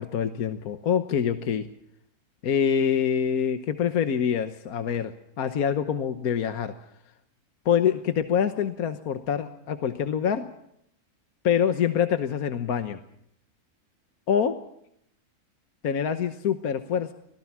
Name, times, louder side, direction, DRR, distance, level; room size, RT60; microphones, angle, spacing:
voice 1, 0.0-1.7 2.4-6.7 7.6-10.5 11.4-13.0 14.3-14.6 15.8-17.1, left 8 dB, 75° left, 8 dB, 1.5 m, -25 dB
25.0 x 18.0 x 7.3 m, 0.73 s
omnidirectional pair, 1.6 m